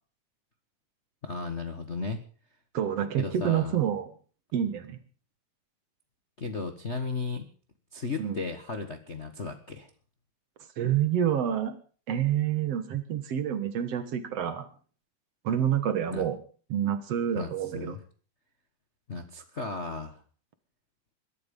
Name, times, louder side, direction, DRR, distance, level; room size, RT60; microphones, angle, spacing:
voice 1, 1.2-2.2 3.2-3.8 6.4-7.5 7.9-9.9 16.1-16.2 17.3-18.0 19.1-20.2, left 4 dB, 40° left, 5 dB, 1.0 m, -35 dB
voice 2, 2.7-4.1 4.5-5.0 8.2-8.4 10.8-11.8 12.1-14.7 15.4-16.4 16.7-18.0, right 10 dB, 60° right, 10 dB, 2.4 m, -28 dB
21.5 x 12.0 x 5.4 m, 0.42 s
omnidirectional pair, 3.3 m